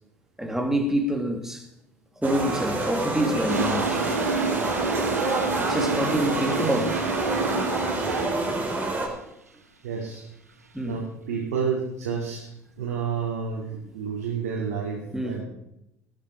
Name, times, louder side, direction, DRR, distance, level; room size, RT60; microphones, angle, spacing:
voice 1, 0.4-1.7 2.2-4.0 5.5-7.1 10.7-11.0 15.1-15.4, equal, 5° right, 2.8 m, -26 dB
sound 1, 2.2-9.1, right 2 dB, 20° right, 4.3 m, -28 dB
Toilet flush, 3.5-8.7, right 4 dB, 85° right, 1.1 m, -29 dB
voice 2, 9.8-10.2 10.8-12.5 12.8-15.4, right 6 dB, 65° right, 2.9 m, -30 dB
19.5 x 8.9 x 4.8 m
figure-of-eight pair, 60°, 8 cm